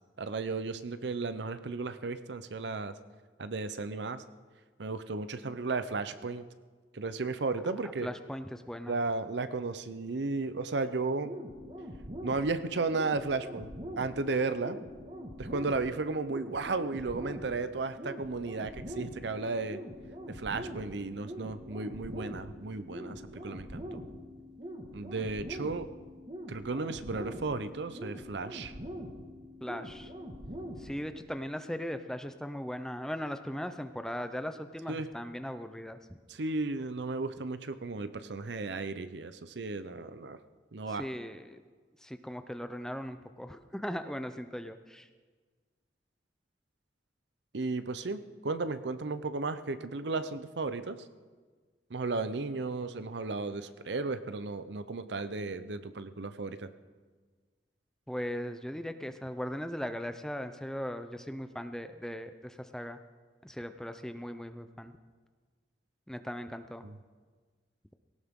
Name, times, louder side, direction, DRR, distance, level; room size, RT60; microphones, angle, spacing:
voice 1, 0.2-3.0 3.4-4.2 4.8-6.5 6.9-8.1 8.9-11.3 12.2-13.7 14.0-14.8 15.4-19.8 20.3-24.0 24.9-25.9 26.5-28.7 34.9-35.1 36.3-40.4 40.7-41.1 47.5-51.0 51.9-56.7 66.8-67.0, right 3 dB, 70° right, 12 dB, 0.7 m, -34 dB
voice 2, 8.0-9.0 29.6-30.1 30.8-36.0 41.0-41.6 42.0-45.1 58.1-63.0 63.4-64.9 66.1-66.8, equal, 5° left, 9 dB, 0.5 m, -38 dB
sound 1, 11.2-31.2, equal, 35° right, 1.7 m, -43 dB
18.5 x 17.5 x 3.7 m, 1.5 s
head